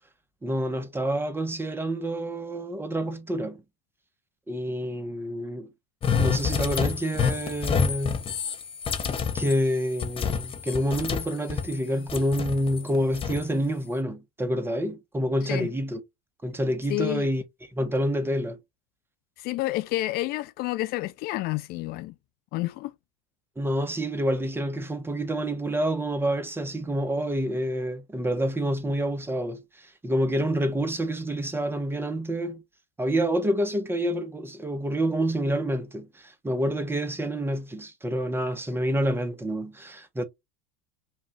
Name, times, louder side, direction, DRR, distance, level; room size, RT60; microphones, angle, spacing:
voice 1, 0.4-3.6 4.5-5.7 6.2-8.2 9.3-16.0 16.4-17.4 17.7-18.6 23.6-32.6 33.0-40.2, equal, 10° right, 0.8 m, -28 dB
sound 1, 6.0-11.8 12.1-13.5, left 6 dB, 25° left, 0.8 m, -28 dB
voice 2, 16.9-17.3 19.4-22.1 22.5-22.9, left 17 dB, 50° left, 0.4 m, -29 dB
5.3 x 2.3 x 2.9 m
supercardioid pair, 100°, 21 cm